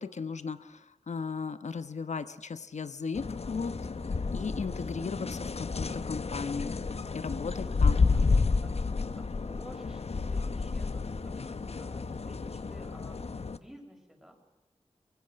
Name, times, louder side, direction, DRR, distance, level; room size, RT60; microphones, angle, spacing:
voice 1, 0.0-3.7 4.3-6.8 7.1-8.0, left 5 dB, 85° left, 12 dB, 1.1 m, -36 dB
sound 1, 3.2-13.6, left 4 dB, 60° left, 1.0 m, -30 dB
voice 2, 7.5-8.2 8.6-8.7 9.1-14.4, equal, ahead, 2 dB, 6.8 m, -53 dB
23.5 x 22.5 x 6.5 m, 1.1 s
wide cardioid pair, 75°, 12 cm